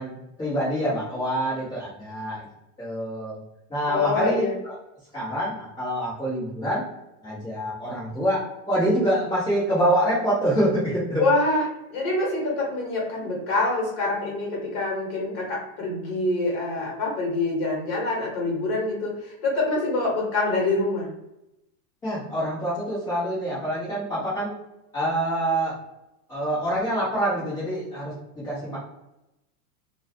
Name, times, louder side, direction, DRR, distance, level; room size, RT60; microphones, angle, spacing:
voice 1, 0.0-2.4 2.8-3.4 3.7-4.7 5.1-6.8 7.2-8.4 8.7-11.2 22.0-24.5 24.9-25.7 26.3-28.8, right 1 dB, 5° left, -11 dB, 0.5 m, -26 dB
voice 2, 3.9-4.5 11.2-11.6 11.9-21.1, left 2 dB, 35° left, -3 dB, 0.9 m, -25 dB
2.4 x 2.0 x 2.7 m, 0.90 s
supercardioid pair, 170°, 46 cm